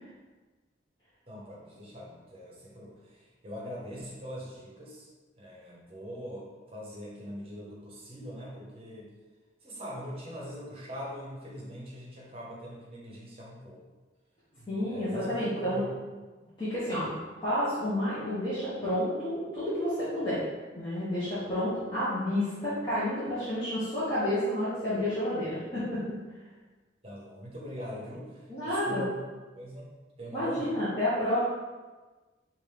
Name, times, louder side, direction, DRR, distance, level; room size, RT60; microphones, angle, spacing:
voice 1, 1.3-5.1 5.4-9.1 9.6-13.8 14.9-15.9 27.0-29.1 29.6-30.7, equal, 30° right, -4 dB, 1.0 m, -42 dB
voice 2, 14.6-15.8 16.6-17.2 17.4-20.4 20.8-26.1 28.5-29.0 30.3-31.4, left 1 dB, 25° left, -13 dB, 1.1 m, -30 dB
5.1 x 2.6 x 3.2 m, 1.3 s
head